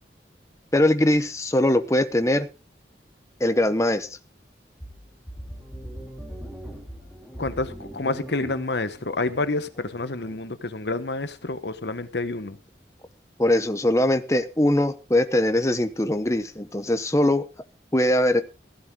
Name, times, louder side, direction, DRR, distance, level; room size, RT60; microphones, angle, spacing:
voice 1, 0.7-2.5 3.4-4.1 13.4-17.5 17.9-18.4, left 1 dB, 15° left, 0.8 m, -21 dB
sound 1, 4.8-10.4, equal, 5° right, 3.8 m, -40 dB
voice 2, 7.4-12.6, left 2 dB, 75° left, 1.2 m, -28 dB
15.5 x 11.5 x 3.7 m
head